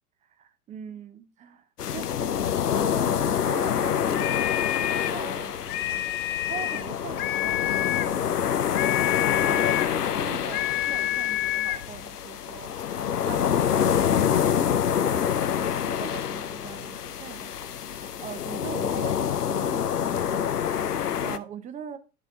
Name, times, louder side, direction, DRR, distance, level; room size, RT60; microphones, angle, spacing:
voice 1, 0.3-8.5 9.4-22.0, right 7 dB, 15° right, 0.6 m, -42 dB
sound 1, 1.8-21.4, left 9 dB, 90° left, 0.6 m, -27 dB
sound 2, 4.1-5.2 5.6-6.9 7.2-8.1 8.7-10.0 10.5-11.9, left 14 dB, 40° left, 0.5 m, -28 dB
10.0 x 3.5 x 4.5 m
figure-of-eight pair, 95°, 46 cm